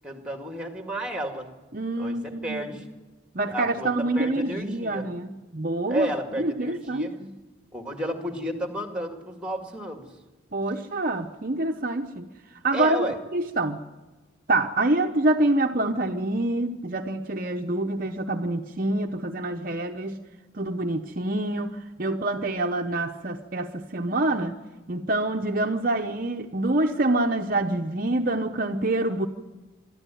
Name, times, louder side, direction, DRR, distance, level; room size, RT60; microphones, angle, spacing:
voice 1, 0.0-1.5 2.0-2.9 3.4-5.1 5.9-7.1 7.7-10.1 12.7-13.2, equal, 5° right, 4 dB, 2.2 m, -32 dB
voice 2, 1.7-2.7 3.3-6.1 6.4-7.3 10.5-12.3 12.6-13.0 13.3-13.8 14.5-20.2 20.5-24.5 24.9-29.3, right 2 dB, 45° right, 4 dB, 0.9 m, -26 dB
24.0 x 13.0 x 9.2 m, 1.2 s
head